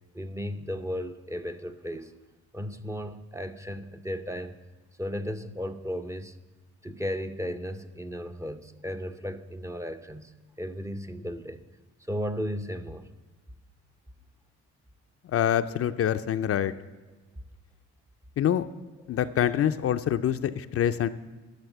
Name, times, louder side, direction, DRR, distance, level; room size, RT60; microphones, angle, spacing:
voice 1, 0.1-2.1 2.5-4.6 5.0-6.4 6.8-10.3 10.6-11.6 12.1-13.1, equal, 10° right, 8 dB, 0.6 m, -35 dB
voice 2, 15.3-16.7 18.4-18.6 19.1-21.1, left 10 dB, 50° left, 10 dB, 0.5 m, -25 dB
11.5 x 6.7 x 7.9 m, 1.2 s
cardioid pair, 90°, 30 cm